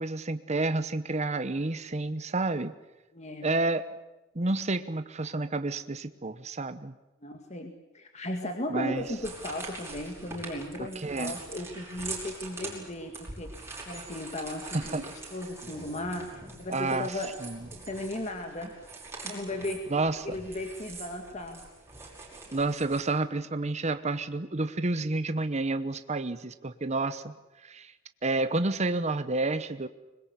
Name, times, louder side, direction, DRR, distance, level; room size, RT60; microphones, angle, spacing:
voice 1, 0.0-2.7 3.4-3.9 4.3-6.9 8.7-9.0 10.8-11.4 14.7-15.0 16.7-17.1 17.4-17.6 19.9-20.4 22.5-27.3 27.6-27.9 28.2-29.9, right 2 dB, 35° right, 11 dB, 0.9 m, -30 dB
voice 2, 3.1-3.5 7.2-17.3 17.8-18.9 19.2-19.8 20.2-21.6, left 1 dB, 35° left, 4 dB, 2.0 m, -36 dB
sound 1, 9.0-23.0, right 3 dB, 15° right, 5.6 m, -43 dB
25.0 x 21.5 x 8.3 m, 1.1 s
head